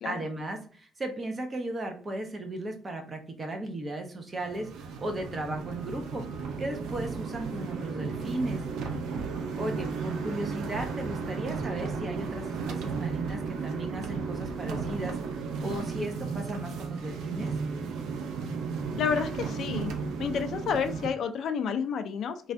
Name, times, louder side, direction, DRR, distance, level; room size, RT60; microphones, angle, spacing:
voice 1, 0.0-6.3 6.6-8.6 9.6-17.5, right 1 dB, 25° right, 4 dB, 0.7 m, -36 dB
sound 1, 4.4-21.1, right 5 dB, 85° right, 0.5 m, -34 dB
voice 2, 19.0-19.9 20.2-22.5, left 6 dB, 60° left, 8 dB, 0.4 m, -30 dB
3.2 x 2.3 x 2.5 m, 0.42 s
cardioid pair, 125°, 0 cm